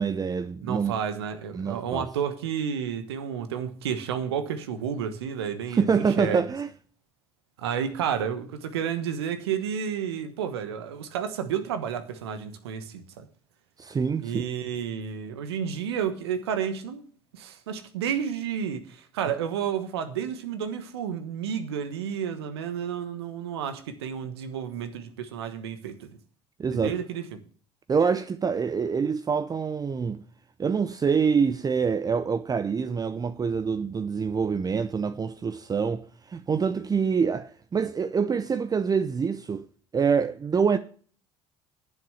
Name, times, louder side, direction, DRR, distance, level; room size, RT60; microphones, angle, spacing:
voice 1, 0.0-0.9 1.5-2.1 5.7-6.7 13.8-14.4 26.6-27.0 27.9-30.2 30.6-39.7 39.9-40.8, right 6 dB, 30° right, 0.7 m, -26 dB
voice 2, 0.6-6.4 7.6-13.3 14.2-17.0 17.3-26.1 26.7-27.4, right 8 dB, 80° right, 1.2 m, -31 dB
9.8 x 7.5 x 7.0 m
hypercardioid pair, 60°, 13 cm